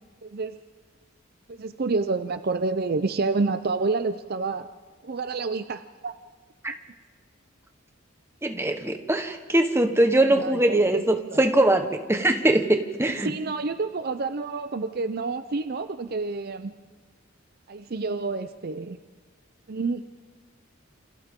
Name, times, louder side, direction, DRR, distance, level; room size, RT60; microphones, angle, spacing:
voice 1, 0.2-0.6 1.5-4.7 5.0-6.1 10.3-11.0 11.3-11.4 13.2-16.7 17.7-19.0 19.7-20.0, right 3 dB, 50° right, 10 dB, 0.6 m, -28 dB
voice 2, 8.4-13.3, right 1 dB, 15° right, 5 dB, 1.2 m, -22 dB
28.0 x 26.5 x 3.7 m, 1.5 s
head